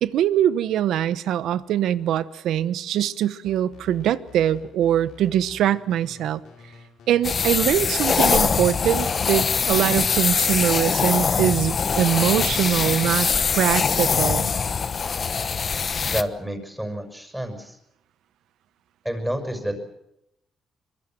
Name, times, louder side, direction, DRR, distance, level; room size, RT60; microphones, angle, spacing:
voice 1, 0.0-6.4 7.1-14.5, right 11 dB, 80° right, 16 dB, 1.1 m, -23 dB
sound 1, 3.4-12.2, left 6 dB, 80° left, 6.2 m, -48 dB
sound 2, 7.2-16.2, left 5 dB, 40° left, 1.2 m, -22 dB
voice 2, 16.0-17.8 19.0-19.8, equal, 5° right, 6 dB, 6.3 m, -29 dB
24.5 x 22.0 x 7.6 m, 0.80 s
cardioid pair, 90°, 0 cm